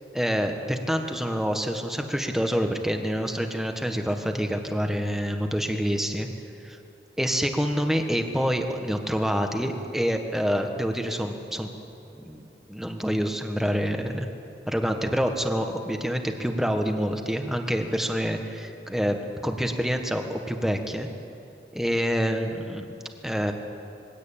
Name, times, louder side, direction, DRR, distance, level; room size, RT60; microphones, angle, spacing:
voice 1, 0.1-6.3 6.6-6.8 7.2-11.7 12.1-14.3 14.7-19.2 19.4-21.1 21.7-22.9 23.2-23.5, equal, ahead, 4 dB, 1.4 m, -27 dB
22.5 x 17.0 x 8.8 m, 2.8 s
head